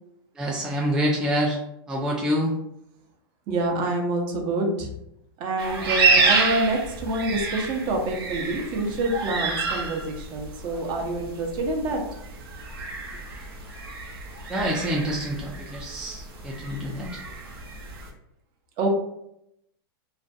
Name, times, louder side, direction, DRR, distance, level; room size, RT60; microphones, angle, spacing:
voice 1, 0.4-1.6 1.9-2.5 14.5-17.1, equal, 5° right, -3 dB, 0.3 m, -26 dB
voice 2, 3.5-4.9 5.4-12.0 18.8-18.9, right 2 dB, 40° right, 2 dB, 0.6 m, -27 dB
sound 1, 5.6-18.1, right 4 dB, 75° right, 0.7 m, -29 dB
2.4 x 2.2 x 2.5 m, 0.79 s
hypercardioid pair, 130°, 13 cm